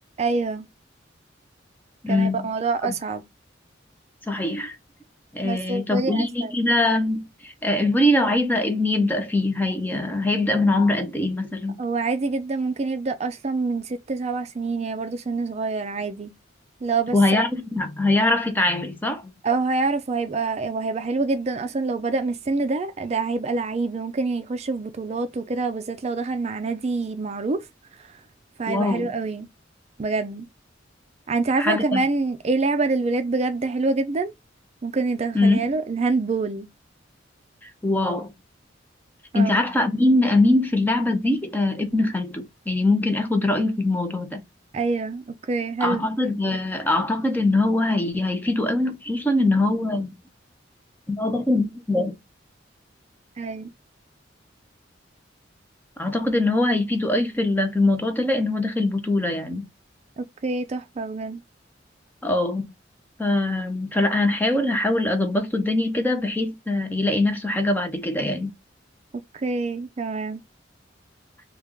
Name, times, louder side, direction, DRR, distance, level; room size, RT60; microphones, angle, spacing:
voice 1, 0.2-0.7 2.1-3.2 5.4-6.5 11.8-16.3 16.8-17.5 19.4-27.6 28.0-28.2 28.6-29.5 30.0-30.5 31.3-34.3 34.8-36.7 39.3-39.6 44.7-46.1 53.4-53.7 60.2-61.4 69.3-70.4, right 3 dB, 35° right, 0.4 m, -26 dB
voice 2, 2.0-2.5 2.8-2.9 4.3-4.8 5.3-11.8 17.1-19.3 28.7-29.1 31.6-32.0 35.3-35.6 37.6-38.3 39.3-44.4 45.8-50.1 51.1-52.1 56.0-59.7 62.2-62.7 63.2-68.5, left 2 dB, 10° left, 0.6 m, -22 dB
3.2 x 2.3 x 3.5 m
head